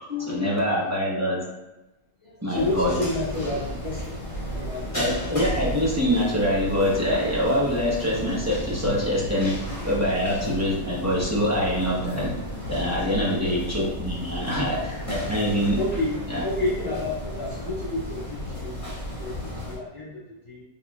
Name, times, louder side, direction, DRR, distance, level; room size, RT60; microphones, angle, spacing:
voice 1, 0.1-1.4 2.4-3.0 4.9-9.6 9.8-12.3 12.7-15.8 16.3-16.4, equal, 15° right, -6 dB, 0.6 m, -24 dB
voice 2, 2.2-5.0 13.2-13.5 15.7-16.1 16.4-20.6, left 1 dB, 50° left, -9 dB, 1.5 m, -31 dB
sound 1, 2.5-19.7, equal, 20° left, 1.4 m, -33 dB
4.3 x 3.5 x 2.3 m, 1.0 s
omnidirectional pair, 1.7 m